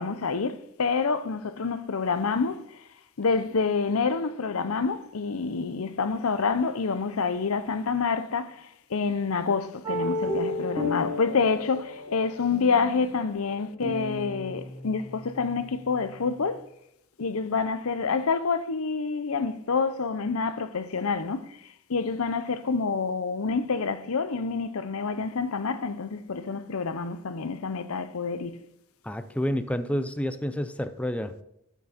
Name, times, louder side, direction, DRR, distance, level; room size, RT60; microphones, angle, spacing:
voice 1, 0.0-2.8 3.2-16.6 17.2-21.6 21.9-28.6, left 4 dB, 90° left, 0.7 m, -27 dB
sound 1, 9.8-16.5, left 2 dB, 15° right, 2.5 m, -34 dB
voice 2, 29.0-31.3, equal, 5° left, 0.5 m, -29 dB
13.0 x 6.1 x 4.2 m
head